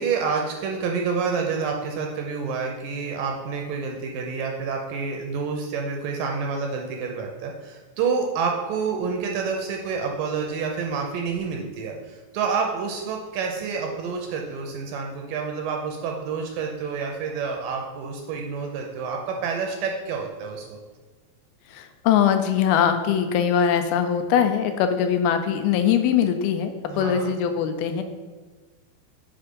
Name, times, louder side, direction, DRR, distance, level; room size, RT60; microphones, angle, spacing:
voice 1, 0.0-20.8 26.9-27.3, right 5 dB, 80° right, 2 dB, 2.1 m, -28 dB
voice 2, 21.7-28.0, left 8 dB, 85° left, 7 dB, 2.5 m, -22 dB
6.3 x 4.5 x 5.2 m, 1.4 s
omnidirectional pair, 4.4 m